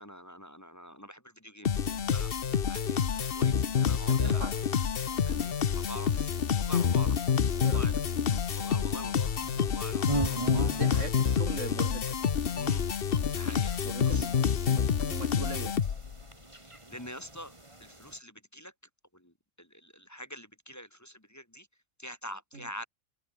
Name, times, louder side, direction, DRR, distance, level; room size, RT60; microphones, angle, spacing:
voice 1, 0.0-2.3 2.6-4.5 5.2-7.2 7.6-7.9 8.5-9.3 9.6-11.0 12.5-12.8 13.3-13.7 14.0-14.3 16.9-17.5 17.8-18.7 19.1-19.3 19.6-21.7 22.0-22.9, equal, 15° left, 3.0 m, -45 dB
sound 1, 1.6-16.2, left 7 dB, 50° left, 1.1 m, -28 dB
sound 2, 1.7-18.2, right 1 dB, 25° right, 3.4 m, -42 dB
voice 2, 3.9-4.5 7.6-7.8 8.3-8.4 10.6-12.2 13.8-15.7 22.5-22.7, right 3 dB, 75° right, 2.9 m, -40 dB
open air
omnidirectional pair, 1.3 m